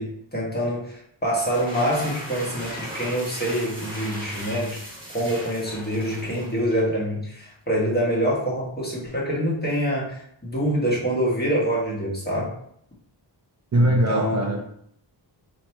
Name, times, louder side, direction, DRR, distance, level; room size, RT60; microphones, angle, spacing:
voice 1, 0.0-4.8 5.1-12.5 13.7-14.5, equal, 20° left, -4 dB, 1.3 m, -25 dB
sound 1, 1.3-6.9, equal, 10° right, 1.3 m, -37 dB
voice 2, 13.7-14.6, right 1 dB, 40° right, 0 dB, 0.4 m, -21 dB
2.9 x 2.9 x 4.4 m, 0.68 s
wide cardioid pair, 105°, 46 cm